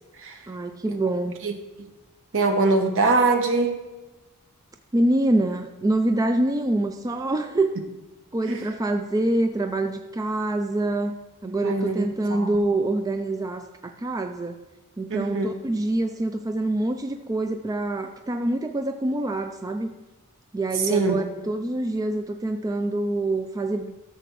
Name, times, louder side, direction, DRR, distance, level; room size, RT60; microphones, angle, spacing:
voice 1, 0.5-1.3 4.9-7.8 8.3-11.1 11.4-14.6 15.0-19.9 20.5-23.9, right 2 dB, 15° right, 6 dB, 0.3 m, -25 dB
voice 2, 2.3-3.8 8.5-8.6 11.6-12.6 15.1-15.5 20.8-21.2, right 3 dB, 60° right, 5 dB, 1.1 m, -23 dB
13.5 x 6.7 x 3.1 m, 1.1 s
head